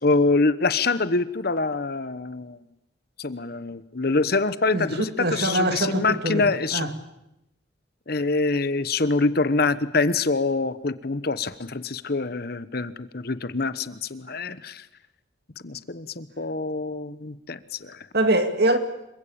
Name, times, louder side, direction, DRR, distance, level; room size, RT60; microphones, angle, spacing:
voice 1, 0.0-2.6 3.2-6.9 8.1-14.9 15.6-18.1, left 3 dB, 50° left, 1.1 m, -25 dB
voice 2, 5.2-6.5 6.7-6.9 18.1-18.8, right 1 dB, 55° right, 2.4 m, -23 dB
27.0 x 23.0 x 8.7 m
head